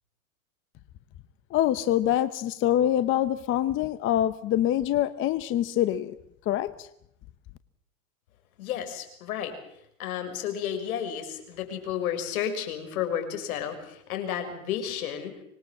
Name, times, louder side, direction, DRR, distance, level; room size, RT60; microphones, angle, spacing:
voice 1, 1.5-6.1 6.5-6.9, left 12 dB, 30° left, 13 dB, 0.9 m, -25 dB
voice 2, 8.6-9.6 10.0-15.4, left 9 dB, 80° left, 7 dB, 6.4 m, -32 dB
25.5 x 21.0 x 7.5 m, 0.74 s
supercardioid pair, 145°, 43 cm